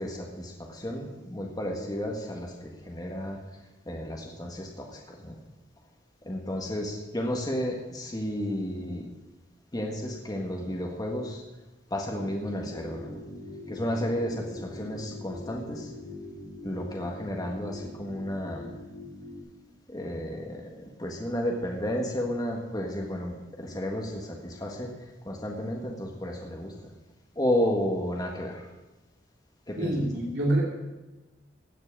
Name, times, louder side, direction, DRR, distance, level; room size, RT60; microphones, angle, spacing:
voice 1, 0.0-3.4 3.9-5.4 6.2-9.1 9.7-11.4 11.9-13.2 13.7-15.9 16.6-18.8 19.9-24.9 25.3-26.7 27.4-28.7 29.7-30.0, equal, 20° left, 1 dB, 1.6 m, -32 dB
sound 1, 12.1-19.4, left 1 dB, 80° left, 6.2 m, -43 dB
voice 2, 29.8-30.6, right 1 dB, 75° right, -4 dB, 2.9 m, -26 dB
16.0 x 6.1 x 8.8 m, 1.1 s
head